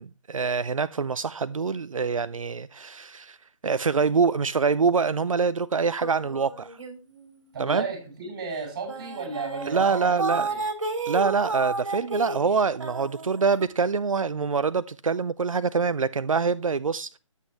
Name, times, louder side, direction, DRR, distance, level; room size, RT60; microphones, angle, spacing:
voice 1, 0.0-3.4 3.6-6.8 7.6-7.9 9.7-10.5 11.1-17.2, right 5 dB, 90° right, 0.5 m, -25 dB
sound 1, 6.0-7.4 7.7-8.0 8.6-8.7 8.9-13.6, right 3 dB, 65° right, 2.6 m, -32 dB
voice 2, 7.5-10.6, right 4 dB, 40° right, 5.8 m, -34 dB
11.5 x 8.2 x 3.1 m
figure-of-eight pair, 145°, 17 cm